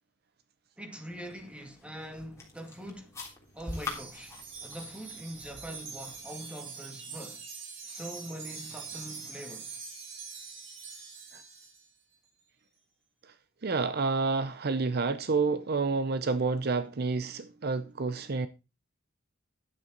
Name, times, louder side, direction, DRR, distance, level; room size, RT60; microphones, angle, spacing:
voice 1, 0.8-3.2 3.5-7.4 7.8-9.8, equal, 5° right, 2.1 m, -43 dB
sound 1, 1.1-6.2, left 3 dB, 15° left, 3.4 m, -45 dB
Wind chime, 3.7-11.9, right 5 dB, 75° right, 5.5 m, -44 dB
voice 2, 13.6-18.5, right 4 dB, 55° right, 0.6 m, -29 dB
11.0 x 8.9 x 3.9 m
head